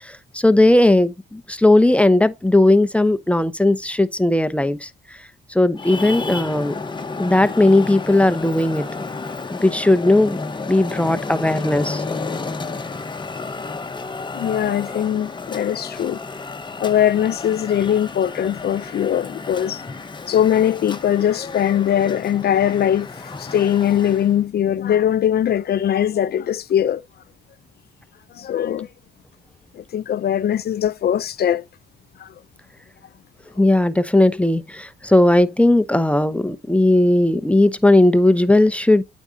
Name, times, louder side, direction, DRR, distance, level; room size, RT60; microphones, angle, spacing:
voice 1, 0.0-4.9 5.5-6.7 7.2-8.9 9.5-10.4 10.7-12.0 33.6-39.0, left 1 dB, 5° left, 0.8 m, -17 dB
Traffic noise roadway noise, 5.7-24.4, left 3 dB, 25° left, 1.0 m, -32 dB
voice 2, 14.3-16.2 16.8-19.8 20.3-23.1 23.4-27.0 28.3-28.9 29.7-31.6 32.2-32.3, left 10 dB, 55° left, 0.5 m, -20 dB
8.9 x 6.2 x 2.7 m
cardioid pair, 90°, 20 cm